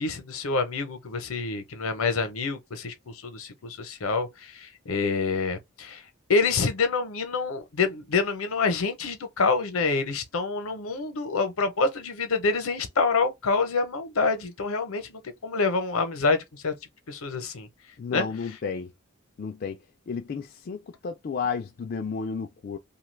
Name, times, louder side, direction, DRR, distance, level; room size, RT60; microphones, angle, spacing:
voice 1, 0.0-6.0 6.3-16.7 17.1-17.7 18.1-18.3, left 4 dB, 80° left, 0.7 m, -27 dB
voice 2, 18.0-18.9 19.4-19.8 20.1-22.8, left 5 dB, 45° left, 0.3 m, -32 dB
2.8 x 2.3 x 3.2 m
head